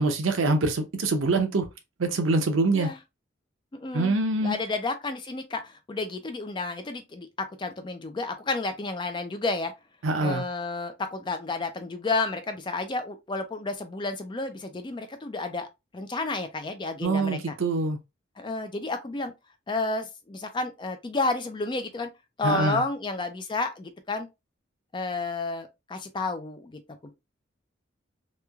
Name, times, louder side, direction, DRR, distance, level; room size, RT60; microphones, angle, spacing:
voice 1, 0.0-1.7 2.0-2.9 3.9-4.5 10.0-10.5 17.0-18.0 22.4-22.8, right 3 dB, 85° right, 0.6 m, -24 dB
voice 2, 3.8-9.7 10.2-15.7 15.9-17.5 18.4-19.3 19.7-22.1 22.4-24.3 24.9-27.1, left 3 dB, 25° left, 0.4 m, -31 dB
3.0 x 2.2 x 2.3 m
head